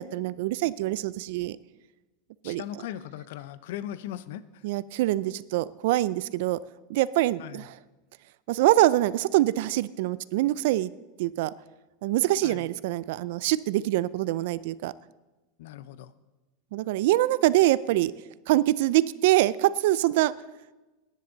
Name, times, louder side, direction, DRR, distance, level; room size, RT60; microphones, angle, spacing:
voice 1, 0.0-1.6 2.4-2.6 4.6-6.6 6.9-7.7 8.5-10.9 11.2-11.5 12.0-14.9 16.7-18.1 18.5-20.3, right 16 dB, 60° right, 18 dB, 0.4 m, -24 dB
voice 2, 2.4-4.6 7.4-7.7 12.4-12.6 15.6-16.1, left 11 dB, 70° left, 16 dB, 0.6 m, -38 dB
17.0 x 10.5 x 3.9 m, 1.1 s
supercardioid pair, 165°, 0 cm